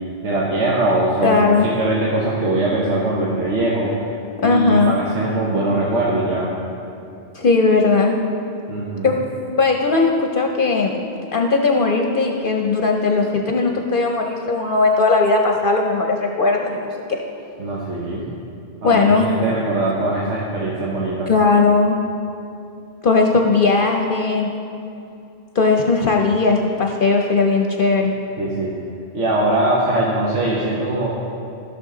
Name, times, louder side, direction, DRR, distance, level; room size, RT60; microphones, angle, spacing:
voice 1, 0.2-3.9 4.4-6.5 8.7-9.1 17.6-18.3 18.8-21.3 28.4-28.7 29.1-31.1, right 2 dB, 90° right, -5 dB, 1.4 m, -21 dB
voice 2, 1.2-1.7 4.4-5.0 7.3-8.2 9.0-9.2 9.6-11.0 11.3-16.9 18.8-19.3 21.3-22.0 23.0-24.5 25.5-28.1, left 3 dB, 55° left, 2 dB, 0.8 m, -17 dB
15.0 x 6.1 x 3.7 m, 2.7 s
omnidirectional pair, 1.2 m